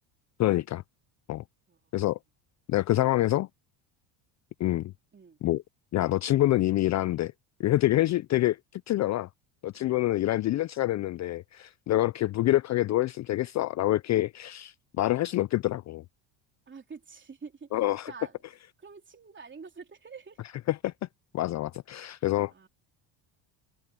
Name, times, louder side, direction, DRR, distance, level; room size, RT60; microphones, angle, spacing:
voice 1, 0.4-0.8 1.3-1.4 1.9-2.2 2.7-3.5 4.6-4.9 5.4-5.6 5.9-7.3 7.6-9.3 9.6-16.0 17.7-18.1 20.7-20.9 21.3-22.5, left 15 dB, 40° left, 0.4 m, -26 dB
voice 2, 16.7-17.8 18.1-18.4 18.8-20.4 22.5-22.7, right 5 dB, 25° right, 3.6 m, -47 dB
supercardioid pair, 100°, 44 cm